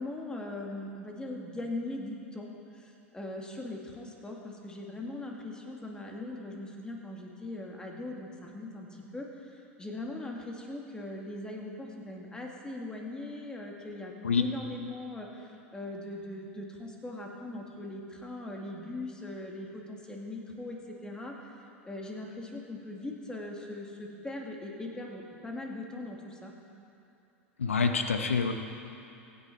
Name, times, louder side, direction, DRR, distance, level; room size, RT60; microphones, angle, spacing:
voice 1, 0.0-21.6 21.8-26.5, left 2 dB, 10° left, 0 dB, 2.7 m, -40 dB
voice 2, 27.6-28.5, left 5 dB, 80° left, 6 dB, 1.2 m, -26 dB
24.5 x 10.0 x 4.6 m, 2.7 s
figure-of-eight pair, 85°, 7 cm